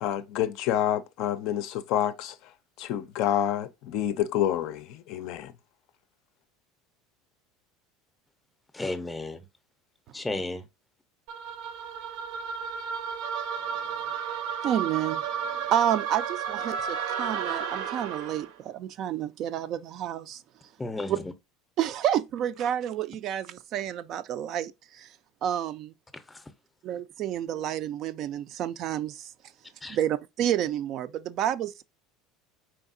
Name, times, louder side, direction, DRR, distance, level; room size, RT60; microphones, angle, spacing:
voice 1, 0.0-2.4 2.8-5.5, left 11 dB, 55° left, 0.5 m, -28 dB
voice 2, 8.7-9.4 10.1-10.7 20.8-21.3 26.1-26.4 26.9-27.0 29.8-30.0, left 2 dB, 10° left, 0.6 m, -34 dB
sound 1, 11.3-18.5, right 7 dB, 75° right, 0.7 m, -33 dB
voice 3, 14.6-15.2 15.7-20.4 21.1-21.2 21.8-25.1 25.4-25.9 26.8-29.3 29.9-31.8, right 11 dB, 45° right, 0.3 m, -29 dB
4.7 x 3.5 x 2.5 m
cardioid pair, 150°, 0 cm